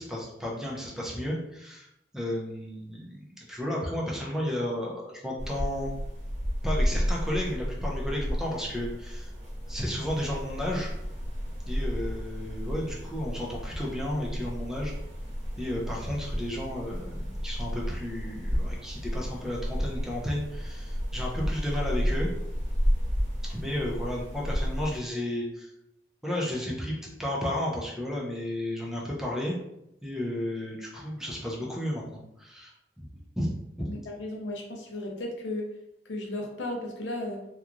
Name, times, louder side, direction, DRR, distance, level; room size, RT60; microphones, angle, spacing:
voice 1, 0.0-1.9 2.1-5.9 6.6-9.3 9.7-10.9 11.6-14.9 15.6-22.4 23.5-25.7 26.2-29.6 30.0-33.1 33.4-33.9, left 1 dB, 5° right, -4 dB, 0.5 m, -33 dB
sound 1, 5.4-25.0, equal, 75° right, 1.4 m, -32 dB
voice 2, 33.9-35.7 36.1-37.4, left 1 dB, 80° left, 1 dB, 0.6 m, -35 dB
2.9 x 2.3 x 2.4 m, 0.84 s
head